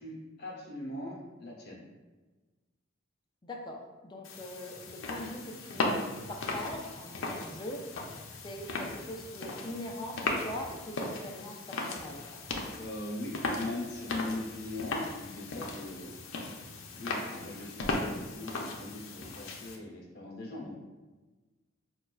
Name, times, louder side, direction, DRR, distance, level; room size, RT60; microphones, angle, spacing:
voice 1, 0.0-1.8 12.7-16.2 16.6-20.8, left 2 dB, 55° left, -3 dB, 0.9 m, -40 dB
voice 2, 3.4-7.8 8.4-12.2, left 1 dB, 25° left, 1 dB, 0.4 m, -42 dB
sound 1, 4.2-19.8, left 2 dB, 90° left, 0.5 m, -37 dB
5.3 x 2.2 x 2.3 m, 1.3 s
head